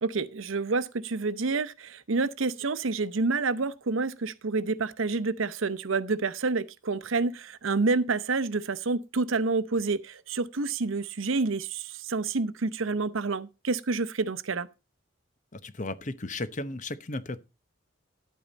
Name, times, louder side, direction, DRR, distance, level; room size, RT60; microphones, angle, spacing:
voice 1, 0.0-14.7, right 3 dB, 75° right, 0.8 m, -28 dB
voice 2, 15.5-17.5, left 2 dB, 35° left, 0.8 m, -35 dB
11.0 x 8.6 x 4.0 m
head